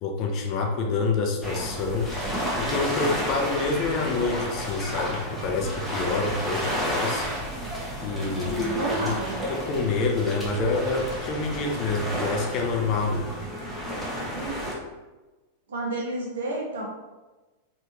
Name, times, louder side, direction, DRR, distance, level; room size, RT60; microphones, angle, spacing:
voice 1, 0.0-2.1 2.5-7.3 8.0-9.1 9.5-13.3, left 3 dB, 40° left, 1 dB, 0.6 m, -27 dB
sound 1, 1.4-14.7, equal, ahead, 0.9 m, -31 dB
voice 2, 8.4-9.4 14.3-14.8 15.7-16.8, right 2 dB, 65° right, -1 dB, 0.7 m, -31 dB
3.3 x 2.6 x 2.9 m, 1.2 s
figure-of-eight pair, 90°, 0 cm